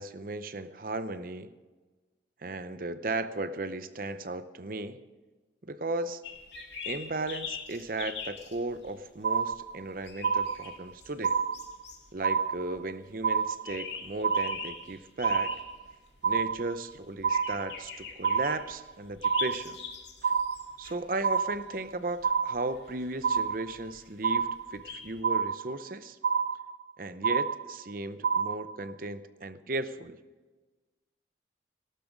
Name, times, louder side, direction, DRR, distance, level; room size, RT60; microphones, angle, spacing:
voice 1, 0.0-1.5 2.4-5.0 5.6-6.2 6.9-11.4 12.1-15.5 16.2-19.8 20.2-20.3 20.8-26.2 27.0-30.2, right 2 dB, 50° right, 12 dB, 0.7 m, -36 dB
sound 1, 6.2-25.2, left 6 dB, 80° left, 2.3 m, -44 dB
sound 2, 9.2-9.9 10.2-10.9 11.2-11.9 12.2-12.9 13.2-13.9 14.2-14.9 15.2-15.9 16.2-16.9 17.2-17.9 18.2-18.9 19.2-19.9 20.2-20.9 21.2-21.9 22.2-22.9 23.2-23.9 24.2-24.9 25.2-25.9 26.2-26.9 27.2-27.9 28.2-28.9, right 6 dB, 85° right, 0.6 m, -28 dB
18.0 x 12.0 x 5.2 m, 1.3 s
head